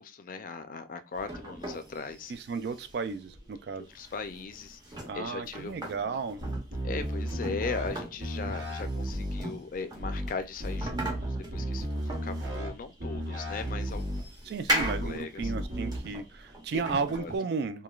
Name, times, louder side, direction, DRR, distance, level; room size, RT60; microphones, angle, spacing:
voice 1, 0.0-2.3 3.9-4.8 5.1-6.2 6.8-11.9 12.2-14.5 15.0-15.5 17.2-17.3, left 4 dB, 50° left, 0.4 m, -38 dB
sound 1, 1.2-17.4, equal, 25° right, 0.8 m, -39 dB
voice 2, 2.3-3.9 5.1-6.4 14.4-17.8, right 5 dB, 65° right, 0.3 m, -34 dB
sound 2, 6.4-7.9 8.2-9.4 10.0-10.3 10.6-12.7 13.0-14.2 14.8-15.1 15.4-16.0, equal, 80° right, 1.0 m, -33 dB
3.0 x 2.2 x 2.3 m
head